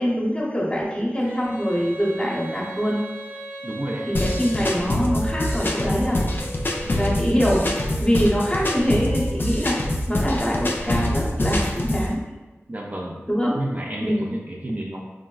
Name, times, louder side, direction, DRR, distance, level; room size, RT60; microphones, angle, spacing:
voice 1, 0.0-3.0 4.1-6.2 6.9-9.8 10.1-12.2 13.3-13.6 14.0-14.2, equal, 20° left, -4 dB, 0.8 m, -24 dB
Female singing, 1.2-10.0, right 1 dB, 75° right, 1.3 m, -38 dB
voice 2, 3.6-4.1 12.7-13.2 13.5-15.1, right 1 dB, 35° right, -1 dB, 0.3 m, -30 dB
sound 1, 4.1-12.1, left 1 dB, 45° left, 0.3 m, -25 dB
3.5 x 2.0 x 2.3 m, 1.2 s
wide cardioid pair, 45°, 5 cm